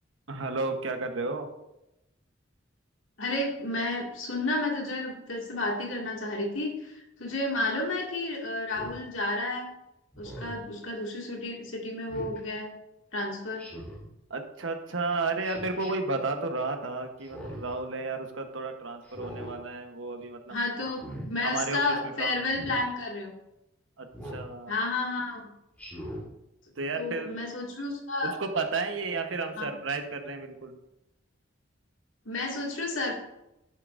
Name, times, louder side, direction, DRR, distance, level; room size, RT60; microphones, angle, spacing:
voice 1, 0.3-1.5 14.3-20.6 20.8-20.9 21.4-22.4 24.0-24.1 24.3-24.7 26.8-27.3 28.2-30.7, right 3 dB, 85° right, 5 dB, 1.1 m, -32 dB
voice 2, 3.2-9.7 10.2-12.7 13.1-13.7 20.5-23.3 24.7-25.5 27.0-28.4 29.6-29.7 32.3-33.2, left 2 dB, 90° left, -1 dB, 2.3 m, -31 dB
Speech synthesizer, 8.7-9.0 10.1-10.6 12.1-12.4 13.6-14.1 15.4-15.9 17.2-17.7 19.0-19.5 20.9-21.3 22.5-22.8 24.1-24.5 25.8-26.3, equal, 10° left, 3.2 m, -41 dB
10.5 x 8.4 x 2.6 m, 0.89 s
head